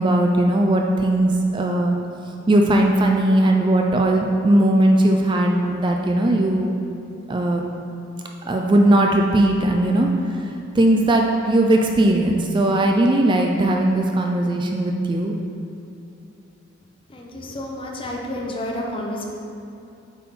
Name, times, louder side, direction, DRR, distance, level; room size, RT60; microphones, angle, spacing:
voice 1, 0.0-2.0 2.5-6.8 7.3-7.6 8.4-10.1 10.8-15.3, right 1 dB, 25° right, 1 dB, 0.4 m, -18 dB
voice 2, 17.1-19.3, left 1 dB, 25° left, -1 dB, 0.8 m, -30 dB
8.0 x 4.3 x 3.7 m, 2.7 s
head